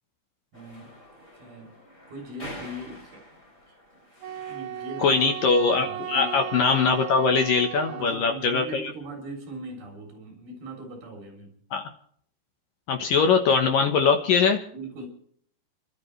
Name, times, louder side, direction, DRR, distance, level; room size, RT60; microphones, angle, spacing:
sound 1, 0.5-5.1, left 1 dB, 15° left, 3.6 m, -46 dB
voice 1, 0.5-1.0 1.4-1.8 2.1-3.3 3.7-3.8 4.3-5.4 5.7-6.5 7.0-7.4 7.8-11.6 14.7-15.1, right 2 dB, 55° right, 1 dB, 5.3 m, -40 dB
Wind instrument woodwind instrument, 4.2-8.5, right 11 dB, 80° right, 2.1 m, -36 dB
voice 2, 5.0-8.9 11.7-11.8 12.9-14.6, left 5 dB, 65° left, 4 dB, 2.4 m, -22 dB
30.0 x 12.0 x 3.3 m, 0.63 s
omnidirectional pair, 5.3 m